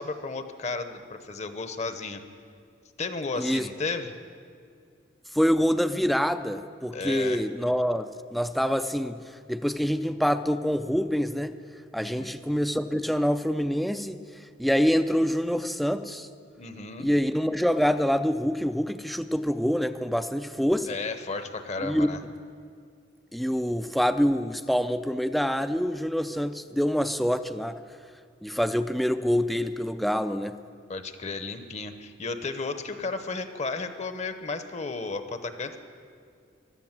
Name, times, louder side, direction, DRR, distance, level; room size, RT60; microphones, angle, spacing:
voice 1, 0.0-2.2 3.0-4.1 6.9-7.5 12.0-12.4 16.6-17.1 20.9-22.2 30.9-35.8, left 3 dB, 40° left, 9 dB, 0.9 m, -33 dB
voice 2, 5.3-9.2 9.5-11.5 11.9-14.2 14.6-16.3 17.0-20.9 21.8-22.1 23.3-27.8 28.4-30.5, equal, ahead, 10 dB, 0.4 m, -26 dB
15.5 x 11.5 x 7.4 m, 2.2 s
head